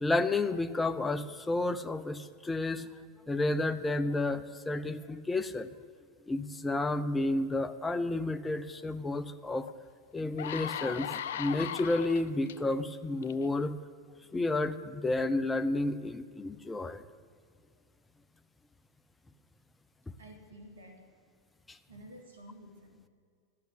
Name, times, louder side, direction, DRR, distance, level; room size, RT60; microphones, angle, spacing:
voice 1, 0.0-2.9 3.3-5.7 6.3-9.7 10.1-13.8 14.3-17.0 21.7-21.8, left 2 dB, 15° left, 11 dB, 0.7 m, -31 dB
sound 1, 9.6-9.7 10.2-12.5 13.2-13.4, left 10 dB, 70° left, 0.6 m, -38 dB
voice 2, 20.2-21.1 21.9-23.1, equal, 85° right, 4 dB, 2.4 m, -51 dB
12.5 x 8.6 x 8.2 m, 2.2 s
hypercardioid pair, 95°, 0 cm